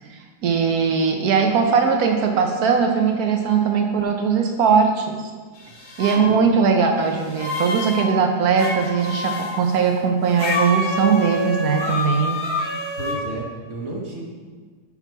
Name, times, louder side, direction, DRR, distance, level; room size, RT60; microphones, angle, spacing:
voice 1, 0.4-5.3 6.0-12.4, right 6 dB, 65° right, 3 dB, 1.1 m, -20 dB
sound 1, 5.6-6.2 7.1-8.1 8.6-9.6 10.4-13.2, left 2 dB, 65° left, 1.7 m, -27 dB
voice 2, 13.0-14.2, right 2 dB, 45° right, -3 dB, 1.2 m, -32 dB
5.9 x 5.9 x 4.5 m, 1.5 s
omnidirectional pair, 1.9 m